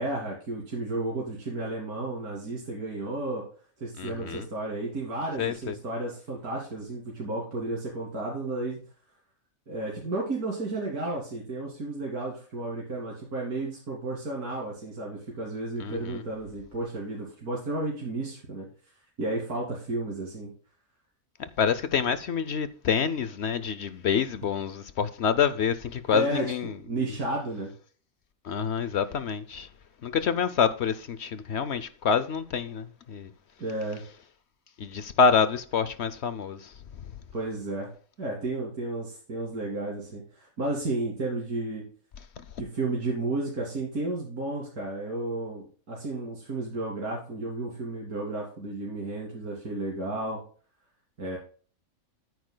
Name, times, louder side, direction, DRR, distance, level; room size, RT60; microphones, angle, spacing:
voice 1, 0.0-3.4 3.8-8.8 9.7-18.7 19.2-20.5 26.1-27.7 33.6-34.0 37.3-37.9 38.2-41.9 42.6-50.4 51.2-51.4, right 2 dB, 75° right, 3.1 m, -32 dB
voice 2, 4.0-4.5 5.4-5.8 15.8-16.2 21.6-26.7 28.4-29.7 30.0-33.3 34.8-36.7, left 6 dB, 60° left, 0.8 m, -27 dB
14.0 x 9.4 x 2.2 m
omnidirectional pair, 1.6 m